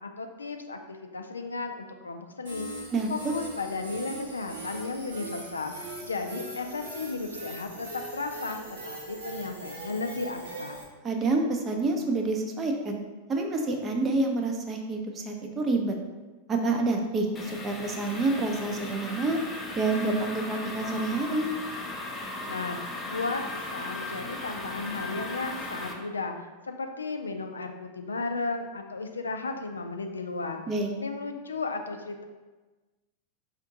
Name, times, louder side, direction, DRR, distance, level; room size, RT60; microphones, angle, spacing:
voice 1, 0.0-2.7 3.1-10.8 22.5-30.6 31.0-32.2, left 3 dB, 75° left, 5 dB, 0.3 m, -34 dB
sound 1, 2.4-10.8, right 1 dB, 65° right, 1.3 m, -40 dB
voice 2, 11.0-13.0 13.3-15.9 16.5-17.3 17.6-19.4 19.8-21.5 30.7-30.9, right 3 dB, 25° right, 3 dB, 0.6 m, -27 dB
sound 2, 17.3-25.9, left 2 dB, 15° left, 0.6 m, -37 dB
4.4 x 2.4 x 3.8 m, 1.2 s
figure-of-eight pair, 90°, 0 cm